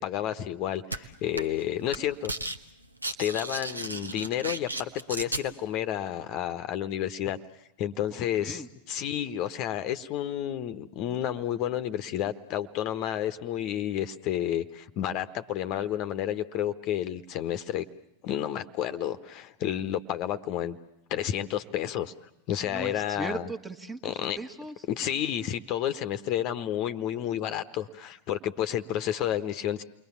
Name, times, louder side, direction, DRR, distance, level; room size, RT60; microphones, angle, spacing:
voice 1, 0.0-2.3 3.2-7.4 7.8-8.6 8.9-17.8 18.2-20.8 21.1-22.1 22.5-23.5 24.0-24.4 24.9-29.8, left 11 dB, 40° left, 11 dB, 1.1 m, -30 dB
sound 1, 0.9-1.0 1.4-1.6 1.9-2.6 2.8-5.4, right 2 dB, 80° right, 1.3 m, -34 dB
voice 2, 8.1-8.7 22.6-24.9, right 2 dB, 10° right, 6 dB, 1.6 m, -39 dB
29.5 x 22.5 x 7.2 m, 0.84 s
figure-of-eight pair, 90°, 0 cm